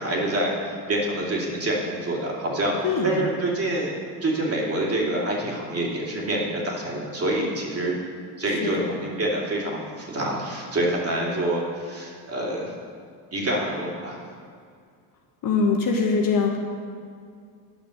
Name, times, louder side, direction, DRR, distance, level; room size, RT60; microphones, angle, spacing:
voice 1, 0.0-2.8 3.0-3.9 4.2-8.0 8.4-12.7 13.3-14.2, right 1 dB, 30° right, -3 dB, 2.6 m, -26 dB
voice 2, 2.8-3.3 15.4-16.6, left 4 dB, 45° left, 1 dB, 1.4 m, -22 dB
9.5 x 6.0 x 6.5 m, 2.2 s
supercardioid pair, 105°, 47 cm